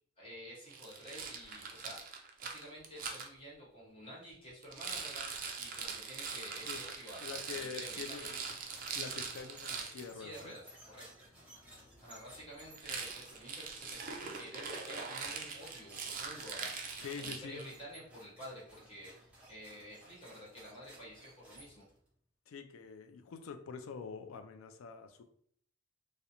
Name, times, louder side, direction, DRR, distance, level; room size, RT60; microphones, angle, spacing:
voice 1, 0.2-8.3 10.1-11.3 12.0-21.9, equal, 30° left, -6 dB, 1.1 m, -51 dB
Rattle, 0.7-3.3 4.6-10.0 12.8-17.7, right 5 dB, 45° right, 0.4 m, -42 dB
voice 2, 7.2-8.4 8.9-10.5 17.0-17.6 22.5-25.2, left 5 dB, 85° left, 8 dB, 0.4 m, -45 dB
sound 1, 8.1-22.1, right 1 dB, 5° right, 0.7 m, -57 dB
2.4 x 2.0 x 2.9 m, 0.62 s
head